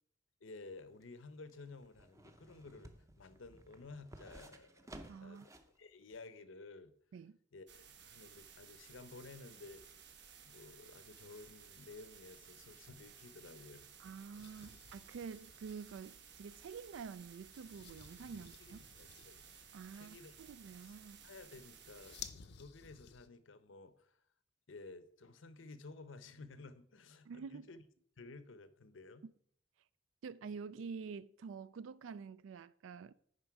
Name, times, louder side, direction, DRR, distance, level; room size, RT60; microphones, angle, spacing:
voice 1, 0.4-4.9 5.2-5.5 5.8-6.9 7.5-9.8 10.4-13.9 18.6-19.4 19.9-20.5 20.8-22.2 22.6-24.2 24.7-27.8 28.2-29.2, left 3 dB, 90° left, 0.7 m, -54 dB
sound 1, 0.7-5.8 6.1-6.2, right 1 dB, 15° right, 0.6 m, -56 dB
voice 2, 5.1-5.5 7.1-7.4 14.0-18.8 19.7-21.2 27.3-27.7 30.2-33.1, right 5 dB, 85° right, 0.3 m, -48 dB
sound 2, 7.7-22.3, right 7 dB, 60° right, 0.9 m, -58 dB
sound 3, 14.3-23.3, left 8 dB, 55° left, 0.5 m, -56 dB
9.8 x 5.1 x 4.7 m
head